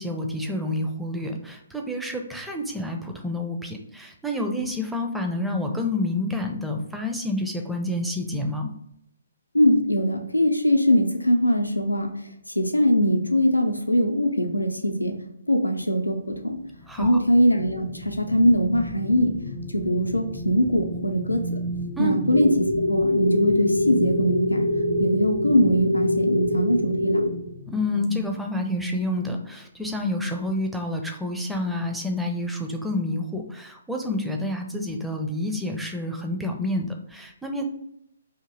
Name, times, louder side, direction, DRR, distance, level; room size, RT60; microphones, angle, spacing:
voice 1, 0.0-8.7 16.9-17.2 22.0-22.2 27.7-37.7, left 1 dB, 5° right, 2 dB, 0.4 m, -28 dB
voice 2, 9.5-12.1 12.6-15.1 15.5-16.6 17.0-19.3 19.7-21.6 22.0-22.5 22.9-24.7 25.0-27.2, equal, 85° left, 4 dB, 0.5 m, -21 dB
sound 1, 16.6-29.4 29.8-30.0, equal, 45° left, 0.7 m, -35 dB
sound 2, 22.3-27.3, left 1 dB, 55° right, 0.6 m, -24 dB
2.8 x 2.6 x 3.8 m, 0.78 s
figure-of-eight pair, 130°, 0 cm